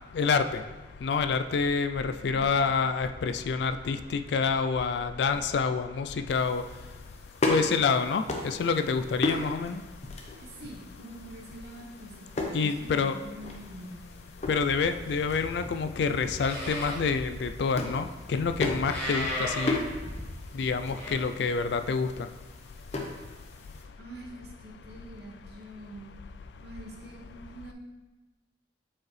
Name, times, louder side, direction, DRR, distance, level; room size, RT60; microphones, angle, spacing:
voice 1, 0.1-0.6 1.0-6.6 7.5-9.8 12.5-13.1 14.5-19.8 20.5-22.1, left 5 dB, 65° left, 9 dB, 0.3 m, -27 dB
sound 1, 6.3-23.9, left 2 dB, 40° left, 0.7 m, -37 dB
voice 2, 10.4-14.1 24.0-26.2 26.6-27.7, right 1 dB, 60° right, 0 dB, 1.1 m, -45 dB
Livestock farm animals working animals, 14.8-21.1, left 1 dB, 10° left, 1.5 m, -37 dB
7.3 x 4.7 x 3.2 m, 1.2 s
head